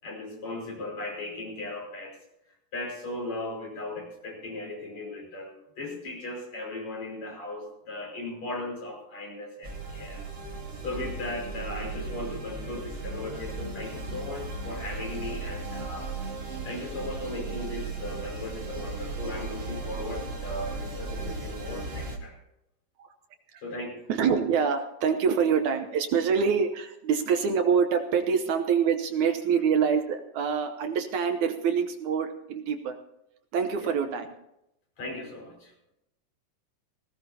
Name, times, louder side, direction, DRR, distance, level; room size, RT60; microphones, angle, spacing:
voice 1, 0.0-2.2 2.7-10.2 10.8-16.1 16.6-22.4 23.6-24.0 29.5-29.6 33.8-34.0 35.0-35.7, left 2 dB, 55° left, -1 dB, 6.6 m, -37 dB
sound 1, 9.6-22.2, right 3 dB, 30° right, 1.1 m, -36 dB
voice 2, 24.1-33.0 33.5-34.3, right 6 dB, 70° right, 6 dB, 2.2 m, -25 dB
20.0 x 17.5 x 2.8 m, 0.84 s
omnidirectional pair, 3.8 m